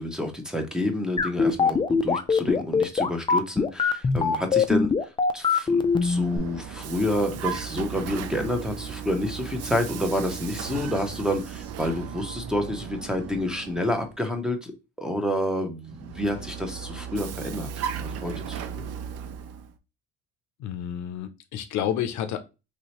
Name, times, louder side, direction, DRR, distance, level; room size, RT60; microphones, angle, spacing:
voice 1, 0.0-14.7 15.0-17.7 18.0-18.9, left 1 dB, ahead, 0.8 m, -29 dB
sound 1, 1.2-6.4, left 5 dB, 15° left, 0.4 m, -22 dB
Vehicle, 5.7-14.2 15.9-19.7, right 8 dB, 55° right, 0.5 m, -36 dB
voice 2, 20.6-22.4, left 10 dB, 65° left, 0.5 m, -30 dB
3.2 x 2.7 x 2.9 m
supercardioid pair, 75°, 31 cm